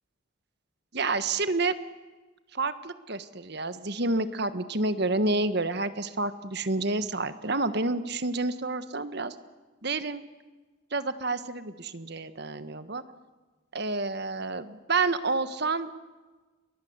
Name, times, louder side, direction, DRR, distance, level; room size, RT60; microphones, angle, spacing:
voice 1, 0.9-1.7 2.5-9.3 9.8-10.2 10.9-13.0 13.7-15.9, right 3 dB, 50° right, 12 dB, 1.4 m, -29 dB
30.0 x 23.0 x 8.1 m, 1.3 s
head